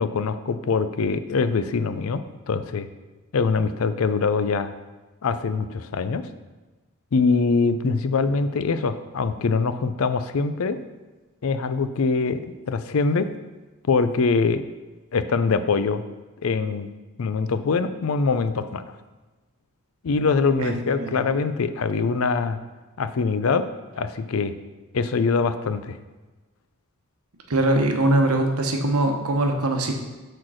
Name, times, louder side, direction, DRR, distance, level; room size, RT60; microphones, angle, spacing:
voice 1, 0.0-2.2 2.5-2.9 3.3-4.7 5.2-6.3 7.1-10.8 11.4-13.3 13.9-14.6 15.1-16.0 16.4-16.9 17.2-18.8 20.0-22.6 23.0-23.6 24.0-24.5 24.9-26.0, left 4 dB, 70° left, 11 dB, 0.5 m, -23 dB
voice 2, 20.6-21.3 27.5-29.9, right 2 dB, 85° right, 3 dB, 1.0 m, -22 dB
6.2 x 4.5 x 6.2 m, 1.2 s
head